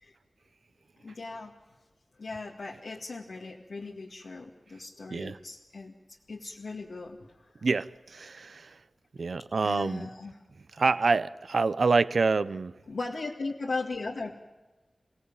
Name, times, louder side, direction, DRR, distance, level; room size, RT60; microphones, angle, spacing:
voice 1, 1.0-1.5 2.2-5.9 6.3-7.5 9.6-10.3 12.9-14.3, left 3 dB, 90° left, 2.1 m, -37 dB
voice 2, 7.6-8.8 9.2-10.1 10.7-12.7, right 4 dB, 75° right, 0.7 m, -27 dB
28.5 x 17.0 x 8.8 m
wide cardioid pair, 60°, 0 cm